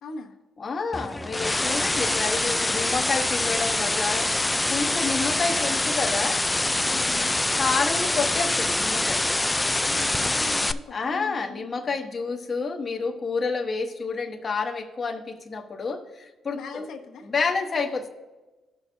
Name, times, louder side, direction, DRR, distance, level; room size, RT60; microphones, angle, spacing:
voice 1, 0.0-0.3 6.8-7.3 9.8-11.6 16.5-17.3, left 4 dB, 75° left, 2 dB, 0.9 m, -40 dB
voice 2, 0.6-4.3 4.7-6.4 7.6-9.2 10.9-16.8 17.3-18.1, left 4 dB, 40° left, 3 dB, 1.0 m, -29 dB
sound 1, 0.9-10.7, left 2 dB, 15° left, 0.4 m, -25 dB
16.5 x 6.0 x 2.7 m, 1.1 s
cardioid pair, 90°, 0 cm